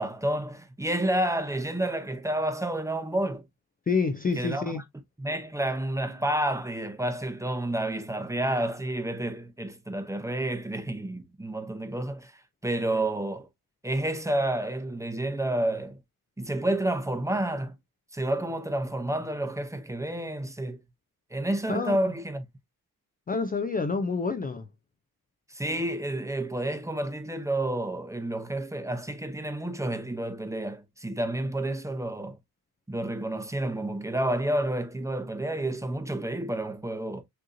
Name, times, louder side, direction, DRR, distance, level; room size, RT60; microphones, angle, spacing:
voice 1, 0.0-3.4 4.4-4.6 5.2-12.3 12.6-13.5 13.8-16.0 16.4-17.8 18.1-20.8 21.3-22.4 25.5-32.4 32.9-37.2, right 1 dB, 10° right, 0.7 m, -30 dB
voice 2, 3.9-4.8 21.7-21.9 23.3-24.7, left 4 dB, 25° left, 0.3 m, -28 dB
6.4 x 2.8 x 2.5 m
wide cardioid pair, 155°, 37 cm